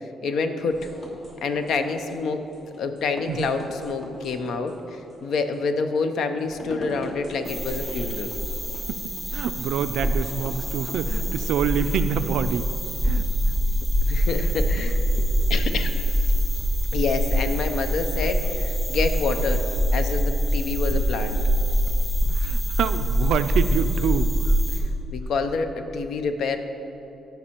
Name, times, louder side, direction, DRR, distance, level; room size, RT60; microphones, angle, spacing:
voice 1, 0.2-0.9 1.4-2.5 2.8-8.4 14.1-15.9 16.9-19.6 19.9-21.4 25.1-26.6, left 4 dB, 70° left, 8 dB, 0.6 m, -27 dB
sound 1, 0.6-11.7, left 1 dB, 50° left, 1.3 m, -42 dB
sound 2, 7.4-24.8, equal, 5° left, 1.4 m, -24 dB
voice 2, 9.3-12.7 13.0-13.3 22.3-24.6, right 8 dB, 85° right, 11 dB, 0.3 m, -26 dB
14.0 x 5.4 x 2.9 m, 2.9 s
cardioid pair, 115°, 0 cm